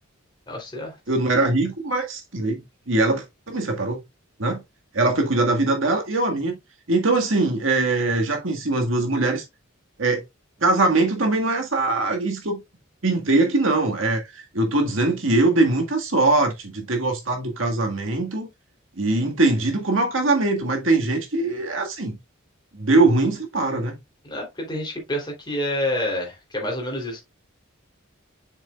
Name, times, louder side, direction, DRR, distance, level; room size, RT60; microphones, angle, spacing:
voice 1, 0.5-1.0 24.2-27.2, left 1 dB, 20° left, 3.2 m, -28 dB
voice 2, 1.1-4.0 4.4-4.6 4.9-6.6 6.9-9.4 10.0-10.2 10.6-12.6 13.0-18.5 19.0-22.2 22.7-24.0, right 2 dB, 70° right, 1.8 m, -22 dB
7.2 x 6.3 x 2.4 m
head